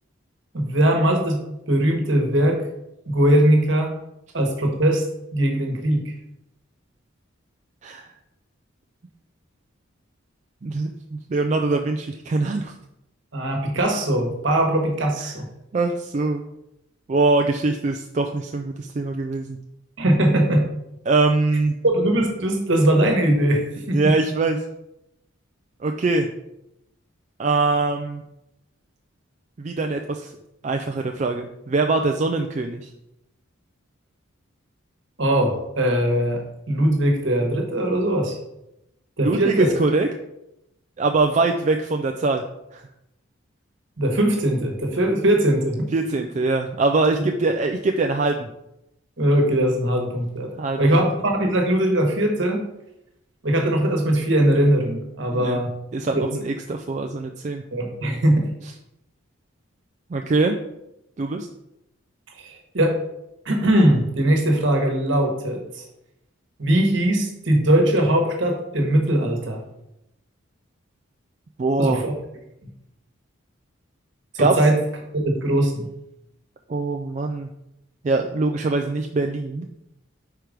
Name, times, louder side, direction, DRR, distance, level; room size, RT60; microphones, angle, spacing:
voice 1, 0.5-2.6 3.1-3.9 4.3-5.0 5.3-6.1 13.3-15.5 20.0-20.6 21.9-24.1 35.2-38.4 39.2-39.7 44.0-45.9 47.2-47.3 49.2-50.5 50.8-52.6 53.4-55.7 56.1-56.2 57.7-58.5 62.4-63.0 63.4-65.8 66.6-69.6 71.8-72.1 74.3-74.7 75.2-75.9, right 1 dB, 60° right, 3 dB, 1.3 m, -20 dB
voice 2, 10.6-12.7 15.2-15.3 15.7-16.4 17.1-19.6 21.1-21.7 23.9-24.6 25.8-26.3 27.4-28.2 29.6-30.3 30.6-32.9 39.2-40.1 41.0-42.4 42.7-42.8 45.9-48.5 50.6-50.8 55.3-55.6 55.9-57.6 60.1-60.6 61.2-61.5 71.6-72.1 74.4-74.5 76.7-77.5 78.0-79.7, right 3 dB, 35° right, 4 dB, 0.3 m, -23 dB
4.8 x 4.5 x 5.0 m, 0.85 s
head